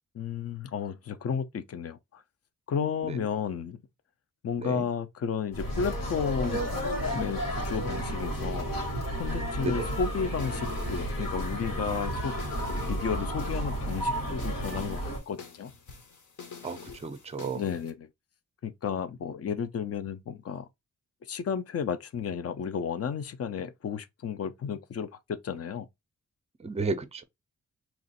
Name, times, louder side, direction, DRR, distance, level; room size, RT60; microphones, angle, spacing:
voice 1, 0.1-2.2 2.7-3.8 4.4-6.7 7.1-8.7 9.1-15.7 17.5-18.1 18.6-20.7 21.3-25.9, left 7 dB, 50° left, 0.5 m, -33 dB
sound 1, 5.5-15.2, equal, 85° left, 1.8 m, -32 dB
sound 2, 9.9-17.9, left 5 dB, 65° left, 0.9 m, -48 dB
voice 2, 16.6-17.6 26.6-27.2, right 3 dB, 20° right, 0.5 m, -33 dB
3.0 x 2.4 x 4.1 m
wide cardioid pair, 120°, 32 cm